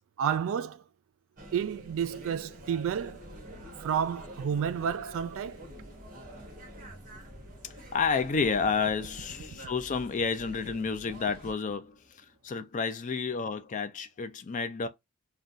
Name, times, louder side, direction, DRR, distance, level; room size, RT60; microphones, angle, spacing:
voice 1, 0.2-0.8 1.5-3.2 3.8-5.6, right 8 dB, 60° right, 0.3 m, -30 dB
sound 1, 1.4-11.5, right 1 dB, 35° right, 0.9 m, -47 dB
sound 2, 5.4-12.6, equal, ahead, 1.2 m, -60 dB
voice 2, 7.6-12.0 12.4-14.9, left 5 dB, 35° left, 0.4 m, -30 dB
2.5 x 2.2 x 3.7 m
head